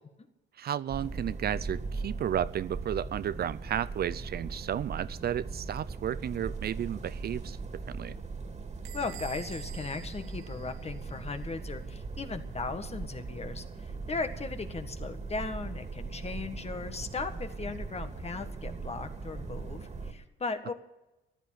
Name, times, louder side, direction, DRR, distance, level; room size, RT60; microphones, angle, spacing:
voice 1, 0.6-8.2, right 10 dB, 50° right, 16 dB, 0.5 m, -33 dB
sound 1, 0.9-20.1, right 4 dB, 35° right, 2.4 m, -39 dB
Bell / Squeak, 8.8-11.4, right 9 dB, 85° right, 0.9 m, -48 dB
voice 2, 8.9-20.7, left 4 dB, 30° left, 8 dB, 1.6 m, -37 dB
14.5 x 11.5 x 7.8 m, 0.95 s
cardioid pair, 90°, 20 cm